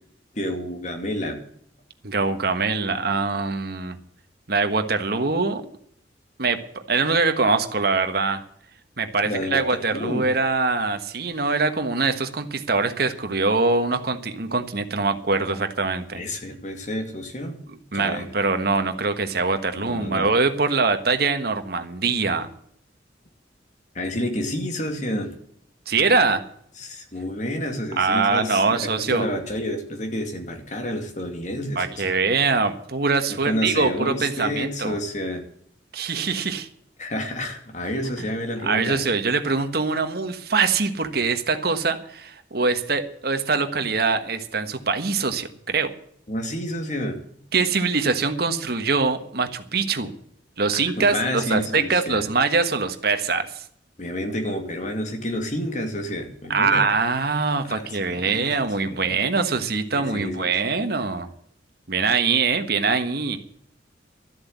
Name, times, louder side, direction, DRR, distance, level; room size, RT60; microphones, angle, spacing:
voice 1, 0.3-1.4 9.2-9.6 9.9-10.2 16.1-17.6 17.9-18.2 19.8-20.3 23.9-25.3 26.8-32.1 33.3-35.4 37.0-39.0 46.3-47.2 51.0-52.3 54.0-56.9 57.6-59.2 59.9-60.5, left 1 dB, 40° left, 5 dB, 2.5 m, -29 dB
voice 2, 2.0-4.0 4.5-5.6 6.4-8.4 9.0-16.2 17.7-22.5 25.9-26.4 28.0-29.3 31.7-35.0 35.9-36.7 38.2-38.3 38.6-45.9 47.5-50.1 50.6-53.6 56.5-61.3 61.9-63.4, right 4 dB, 55° right, 8 dB, 1.4 m, -23 dB
13.0 x 8.0 x 8.2 m, 0.66 s
head